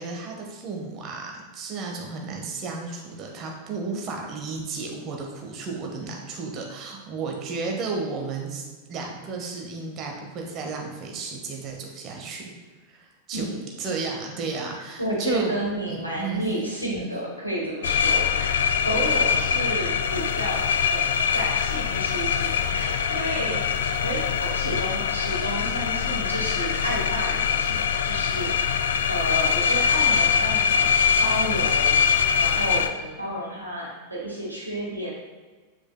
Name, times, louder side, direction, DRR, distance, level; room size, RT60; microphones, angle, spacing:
voice 1, 0.0-12.4 12.9-13.5 13.8-15.5 15.9-16.5, right 4 dB, 35° right, 1 dB, 1.3 m, -33 dB
voice 2, 13.3-13.8 14.7-23.6 24.0-30.9 31.2-35.1, equal, 90° right, -5 dB, 1.9 m, -31 dB
sound 1, 17.8-32.9, left 7 dB, 65° left, 0.4 m, -23 dB
7.5 x 6.9 x 2.3 m, 1.3 s
figure-of-eight pair, 90°, 0 cm